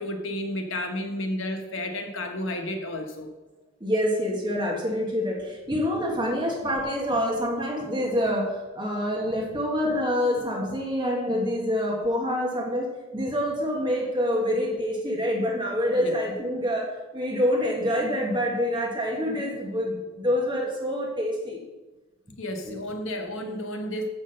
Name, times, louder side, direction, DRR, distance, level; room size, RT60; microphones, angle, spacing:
voice 1, 0.0-3.3 16.0-16.2 22.4-24.1, left 1 dB, 70° left, 5 dB, 1.1 m, -32 dB
voice 2, 3.8-12.9 13.1-21.6 22.7-22.8, equal, 25° right, -1 dB, 1.5 m, -26 dB
7.6 x 6.1 x 6.6 m, 1.1 s
head